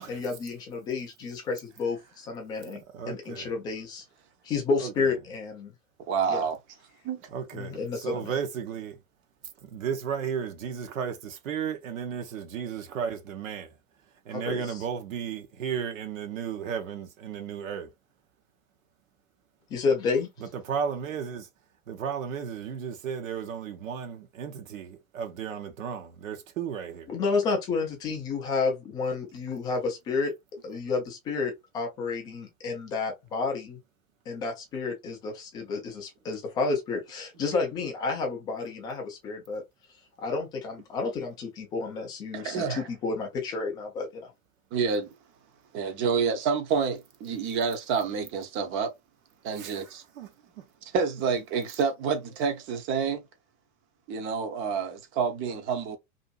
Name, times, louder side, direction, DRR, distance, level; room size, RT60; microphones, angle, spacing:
voice 1, 0.0-2.8 3.1-4.0 4.4-5.7 6.3-6.4 7.5-8.3 14.3-14.8 19.7-20.3 27.1-30.3 30.6-33.8 34.3-39.6 40.2-44.3, left 4 dB, 10° left, 0.3 m, -30 dB
voice 2, 2.7-3.5 4.8-5.1 7.3-9.0 9.6-13.7 14.3-17.9 20.5-21.5 21.9-27.1 49.6-49.8 50.2-50.3 50.6-50.7, right 7 dB, 65° right, 0.8 m, -34 dB
voice 3, 6.1-6.6 7.0-7.2 42.3-42.8 44.7-45.1 45.7-48.9 49.4-50.0 50.9-53.2 54.1-56.0, right 6 dB, 30° right, 0.6 m, -28 dB
2.6 x 2.5 x 2.2 m
figure-of-eight pair, 100°, 43 cm